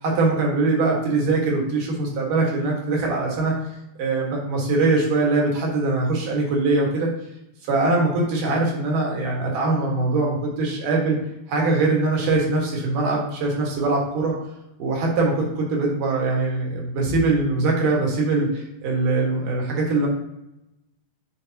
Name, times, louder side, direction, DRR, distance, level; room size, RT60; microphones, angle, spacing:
voice 1, 0.0-3.5 4.0-7.1 7.7-11.2 11.5-14.3 14.8-20.1, right 3 dB, 60° right, -1 dB, 3.0 m, -22 dB
10.0 x 5.2 x 2.8 m, 0.89 s
omnidirectional pair, 4.5 m